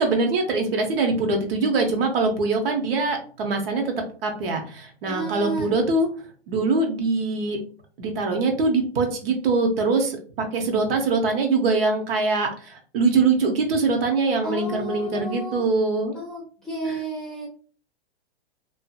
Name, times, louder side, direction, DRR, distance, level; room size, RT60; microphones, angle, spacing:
voice 1, 0.0-3.9 4.2-6.1 6.5-7.6 8.0-16.2, right 3 dB, 60° right, 4 dB, 0.8 m, -23 dB
voice 2, 5.0-5.8 14.4-15.7 16.1-17.5, right 2 dB, ahead, -7 dB, 0.5 m, -32 dB
2.6 x 2.4 x 2.2 m, 0.41 s
hypercardioid pair, 140°, 33 cm